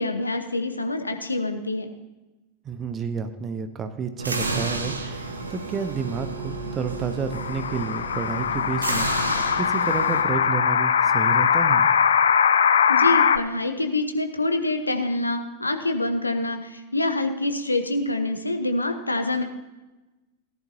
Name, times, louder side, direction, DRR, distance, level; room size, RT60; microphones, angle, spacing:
voice 1, 0.0-1.9 12.9-19.4, left 2 dB, 80° left, 6 dB, 1.1 m, -26 dB
voice 2, 2.6-9.1 9.6-11.9, right 6 dB, 25° right, 9 dB, 1.0 m, -30 dB
sound 1, 4.2-10.2, right 2 dB, 75° right, 1.2 m, -31 dB
sound 2, 7.3-13.4, left 7 dB, 65° left, 0.5 m, -21 dB
17.5 x 11.0 x 2.8 m, 1.1 s
figure-of-eight pair, 90°, 0 cm